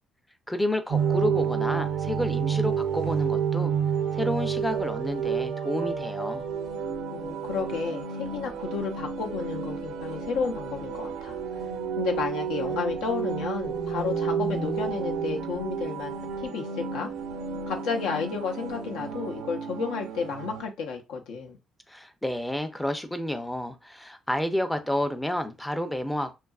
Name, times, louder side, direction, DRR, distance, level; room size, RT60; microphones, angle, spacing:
voice 1, 0.5-3.7 4.1-6.5 21.9-26.3, left 1 dB, 5° left, 0.4 m, -30 dB
sound 1, 0.9-20.6, right 6 dB, 85° right, 0.5 m, -30 dB
voice 2, 7.1-11.4 12.0-16.1 16.4-17.1 17.7-21.6, left 5 dB, 85° left, 0.6 m, -32 dB
2.8 x 2.3 x 2.3 m
cardioid pair, 105°, 0 cm